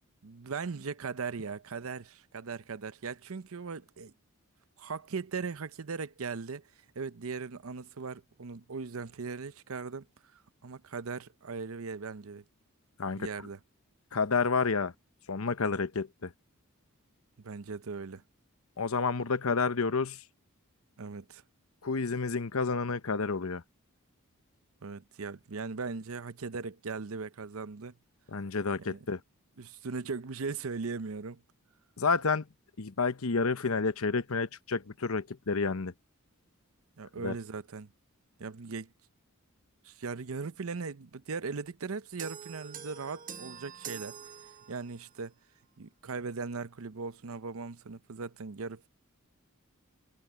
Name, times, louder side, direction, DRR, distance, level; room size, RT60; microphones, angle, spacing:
voice 1, 0.2-4.1 4.8-6.7 6.9-10.1 10.3-12.4 13.2-13.6 17.4-18.2 21.0-21.4 24.8-27.9 28.9-29.0 29.6-31.4 37.0-37.9 38.4-38.9 39.8-45.3 45.8-48.9, right 4 dB, 75° right, 0.7 m, -39 dB
voice 2, 14.1-14.9 15.3-16.3 18.8-20.2 21.8-23.6 28.3-29.2 32.0-32.5 32.8-35.9 37.2-37.3, left 4 dB, 75° left, 0.9 m, -30 dB
sound 1, 42.2-45.1, right 7 dB, 40° right, 0.9 m, -45 dB
head